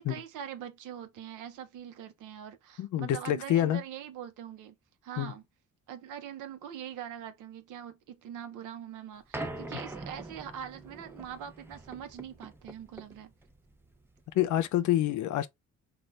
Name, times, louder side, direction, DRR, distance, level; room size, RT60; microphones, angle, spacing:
voice 1, 0.0-4.7 5.0-5.4 5.9-13.3, right 9 dB, 85° right, 0.8 m, -43 dB
voice 2, 2.8-3.8 5.2-5.3 14.3-15.5, left 12 dB, 75° left, 0.6 m, -27 dB
sound 1, 9.3-14.7, right 2 dB, 10° right, 0.5 m, -43 dB
4.0 x 2.4 x 3.2 m
cardioid pair, 90°, 30 cm